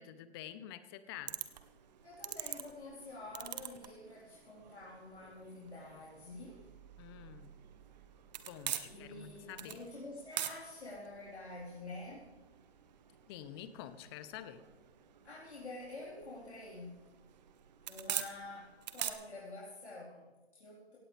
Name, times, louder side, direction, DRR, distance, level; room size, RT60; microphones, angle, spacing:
voice 1, 0.0-1.4 7.0-7.5 8.5-9.8 13.3-14.6, left 10 dB, 25° left, 13 dB, 0.9 m, -48 dB
sound 1, 1.3-19.1, right 11 dB, 40° right, 1.2 m, -46 dB
voice 2, 2.0-6.7 8.9-12.3 15.2-17.1 17.9-21.0, left 2 dB, 90° left, -7 dB, 4.4 m, -48 dB
17.0 x 17.0 x 3.4 m, 1.2 s
hypercardioid pair, 140°, 32 cm